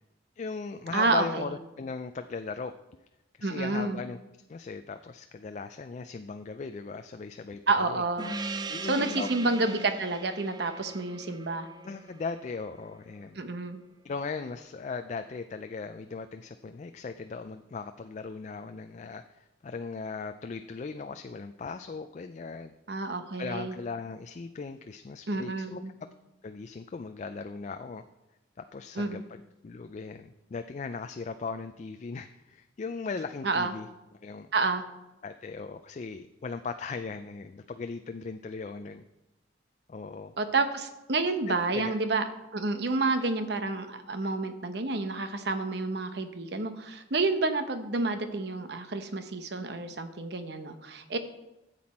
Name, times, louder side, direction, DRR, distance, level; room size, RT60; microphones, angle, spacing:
voice 1, 0.4-2.7 3.4-4.2 4.5-8.0 8.7-9.3 11.8-13.4 14.0-22.7 23.4-25.8 26.4-28.0 28.7-29.4 29.6-33.9 34.2-34.5 35.2-39.0 39.9-40.3 41.5-41.9, left 4 dB, 40° left, 9 dB, 0.3 m, -38 dB
voice 2, 0.9-1.5 3.4-4.0 7.7-8.3 8.9-11.7 13.4-13.8 22.9-23.7 25.3-25.9 29.0-29.2 33.4-33.7 34.5-34.9 40.4-42.2 42.5-51.2, right 3 dB, 65° right, 9 dB, 0.9 m, -29 dB
Gong, 8.2-13.2, right 3 dB, 25° right, 0.4 m, -40 dB
13.0 x 7.7 x 4.2 m, 0.98 s
head